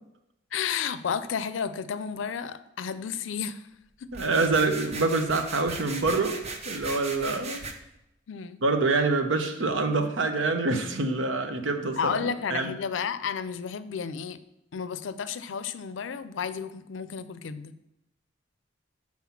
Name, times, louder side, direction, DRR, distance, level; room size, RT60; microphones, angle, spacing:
voice 1, 0.5-3.6 4.0-4.1 8.3-8.6 12.0-14.4 14.7-17.8, left 7 dB, 85° left, 13 dB, 0.5 m, -32 dB
sound 1, 4.1-7.7, right 3 dB, 35° right, 0.7 m, -38 dB
voice 2, 4.1-6.4 6.7-7.6 8.6-12.7, right 3 dB, 90° right, 7 dB, 0.8 m, -26 dB
5.8 x 4.4 x 5.8 m, 0.86 s
head